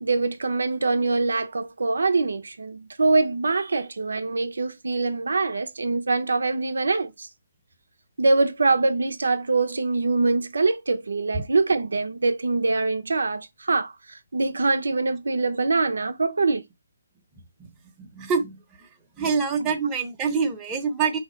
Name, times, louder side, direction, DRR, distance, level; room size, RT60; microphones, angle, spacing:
voice 1, 0.0-7.3 8.2-16.6, right 3 dB, 85° right, 0.6 m, -24 dB
voice 2, 18.0-18.6 19.2-21.2, right 5 dB, 15° right, 0.9 m, -25 dB
3.8 x 2.8 x 4.4 m
hypercardioid pair, 155°, 0 cm